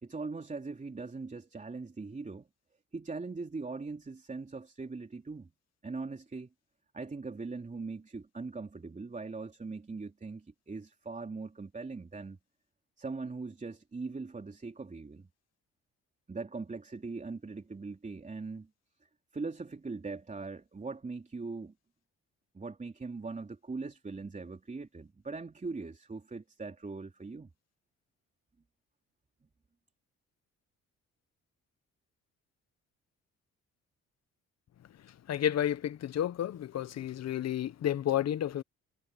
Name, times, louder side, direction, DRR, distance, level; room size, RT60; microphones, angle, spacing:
voice 1, 0.0-2.5 2.9-5.5 5.8-6.5 6.9-12.4 13.0-15.3 16.3-18.7 19.3-21.7 22.5-27.5, right 3 dB, 25° right, 3.7 m, -40 dB
voice 2, 35.0-38.6, left 11 dB, 60° left, 1.0 m, -31 dB
cardioid pair, 90°, 30 cm